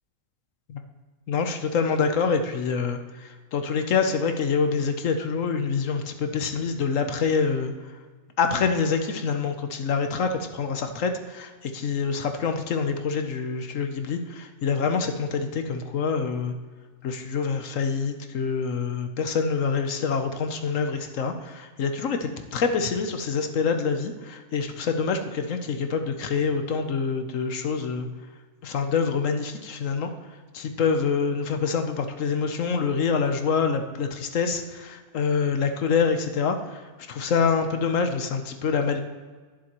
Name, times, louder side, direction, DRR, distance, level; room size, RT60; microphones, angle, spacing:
voice 1, 1.3-3.0 3.5-7.7 8.4-16.5 17.0-28.1 28.6-30.1 30.5-36.6 37.1-39.0, left 5 dB, 65° left, 6 dB, 1.1 m, -26 dB
11.5 x 10.0 x 3.0 m, 1.5 s
omnidirectional pair, 1.5 m